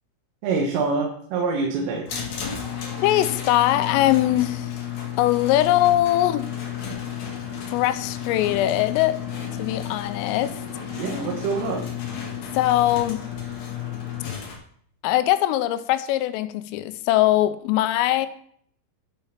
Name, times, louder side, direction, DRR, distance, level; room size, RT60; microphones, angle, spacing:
voice 1, 0.4-2.1 11.0-11.8, right 4 dB, 80° right, 0 dB, 3.9 m, -25 dB
sound 1, 2.1-14.6, left 9 dB, 55° left, 3.2 m, -32 dB
voice 2, 3.0-4.7 5.2-6.5 7.7-9.2 9.6-10.6 12.5-13.2 15.0-18.3, left 14 dB, 90° left, 13 dB, 3.3 m, -21 dB
11.5 x 6.5 x 5.7 m, 0.63 s
omnidirectional pair, 5.8 m